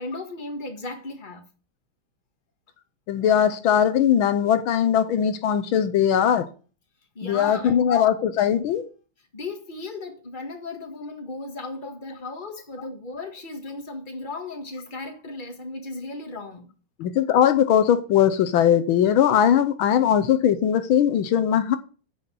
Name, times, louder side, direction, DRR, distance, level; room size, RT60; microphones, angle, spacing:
voice 1, 0.0-1.4 7.2-7.9 9.3-16.7, left 3 dB, 25° left, 1.8 m, -35 dB
voice 2, 3.1-6.5 7.2-8.9 17.0-21.8, left 9 dB, 80° left, 1.6 m, -20 dB
9.3 x 5.7 x 7.0 m
omnidirectional pair, 2.2 m